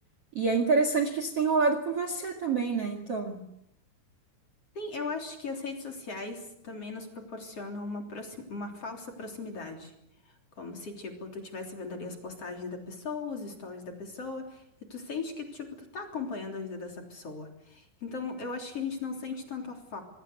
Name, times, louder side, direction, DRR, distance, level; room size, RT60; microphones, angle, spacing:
voice 1, 0.3-3.4, right 4 dB, 45° right, 6 dB, 2.3 m, -27 dB
voice 2, 4.8-9.9 10.6-14.6 14.9-20.0, left 4 dB, 35° left, 3 dB, 3.9 m, -38 dB
26.5 x 20.5 x 8.1 m, 0.77 s
omnidirectional pair, 5.4 m